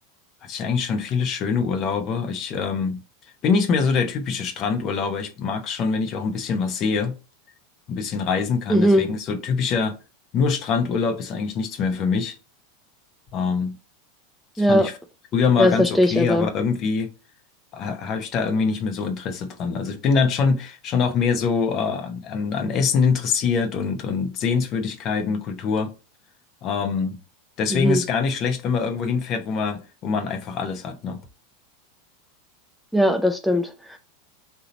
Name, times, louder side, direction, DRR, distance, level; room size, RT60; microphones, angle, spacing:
voice 1, 0.4-3.0 3.4-7.2 7.9-10.0 10.3-12.3 13.3-13.8 14.6-14.9 15.3-17.1 17.7-25.9 26.6-27.2 27.6-31.2, left 5 dB, 45° left, 0.9 m, -24 dB
voice 2, 8.7-9.0 14.6-14.9 15.6-16.5 27.7-28.0 32.9-34.0, equal, ahead, 0.5 m, -19 dB
3.9 x 2.7 x 4.1 m
hypercardioid pair, 90°, 0 cm